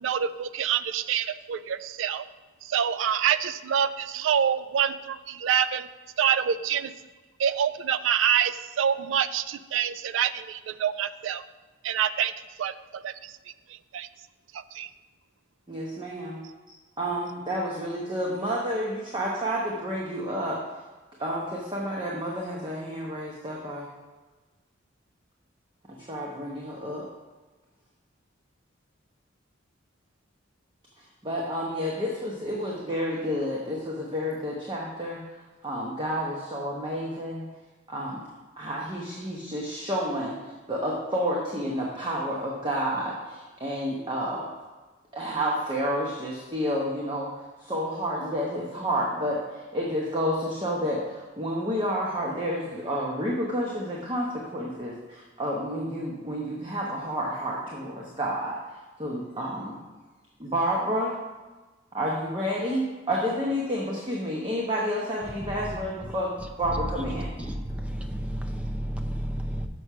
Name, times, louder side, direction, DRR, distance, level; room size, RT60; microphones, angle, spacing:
voice 1, 0.0-2.3 2.6-5.9 6.2-6.9 7.4-11.4 11.8-12.3 12.6-13.3 13.9-14.1 14.5-14.9, right 8 dB, 75° right, 14 dB, 0.3 m, -26 dB
voice 2, 15.7-16.4 16.7-20.6 21.2-23.9 26.0-27.1 31.0-35.2 35.6-37.4 37.9-38.2 38.6-44.5 45.1-59.7 60.4-61.1 61.9-67.3, equal, 25° right, -3 dB, 1.0 m, -30 dB
voice 3, 67.2-69.7, equal, 5° right, 5 dB, 0.5 m, -32 dB
6.5 x 6.1 x 5.5 m, 1.3 s
head